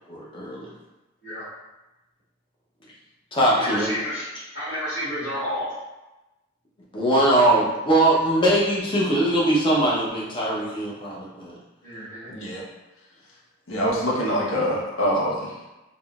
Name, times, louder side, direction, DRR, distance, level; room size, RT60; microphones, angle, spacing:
voice 1, 0.1-0.7 3.3-3.9 6.9-11.6, right 1 dB, 25° left, -5 dB, 0.6 m, -21 dB
voice 2, 3.4-4.2 4.5-5.7 11.8-12.3, equal, 55° left, -16 dB, 1.3 m, -30 dB
voice 3, 12.3-12.6 13.7-15.6, equal, 75° left, -4 dB, 0.6 m, -25 dB
3.5 x 2.0 x 2.3 m, 1.0 s
head